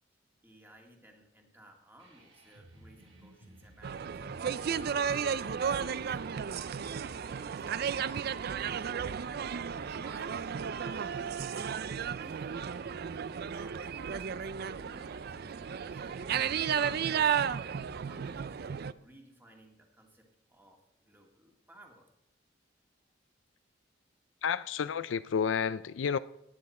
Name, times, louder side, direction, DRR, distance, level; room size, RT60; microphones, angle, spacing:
voice 1, 0.4-9.1 9.9-12.7 13.1-17.2 18.0-22.2, right 1 dB, 10° right, 2.0 m, -58 dB
sound 1, 2.0-18.3, right 1 dB, 80° right, 4.7 m, -56 dB
sound 2, 3.8-18.9, right 7 dB, 55° right, 0.4 m, -33 dB
voice 2, 24.4-26.2, left 7 dB, 80° left, 0.4 m, -30 dB
17.5 x 9.4 x 4.3 m
head